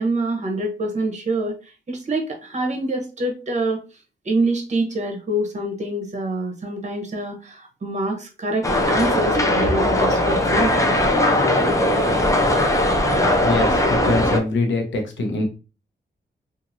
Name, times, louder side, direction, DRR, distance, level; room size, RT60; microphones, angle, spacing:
voice 1, 0.0-1.5 1.9-3.8 4.2-10.7, right 2 dB, 40° right, 3 dB, 0.9 m, -25 dB
sound 1, 8.6-14.4, left 1 dB, 15° left, 0.5 m, -19 dB
voice 2, 13.4-15.5, left 2 dB, 85° left, 2 dB, 0.8 m, -23 dB
2.8 x 2.5 x 2.6 m, 0.33 s
cardioid pair, 70°, 19 cm